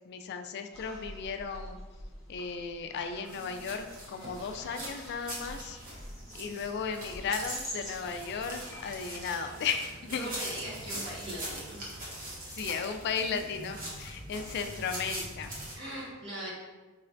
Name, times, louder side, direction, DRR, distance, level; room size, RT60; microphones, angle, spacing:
voice 1, 0.1-1.8 2.3-5.8 6.3-10.3 12.5-15.6, left 5 dB, 50° left, 6 dB, 0.3 m, -35 dB
sound 1, 0.7-9.3, equal, ahead, 1.4 m, -46 dB
sound 2, 3.3-15.7, right 1 dB, 40° right, 1.0 m, -42 dB
voice 2, 10.1-11.8 15.7-16.5, right 1 dB, 60° right, -6 dB, 1.3 m, -40 dB
4.6 x 3.2 x 2.5 m, 1.2 s
head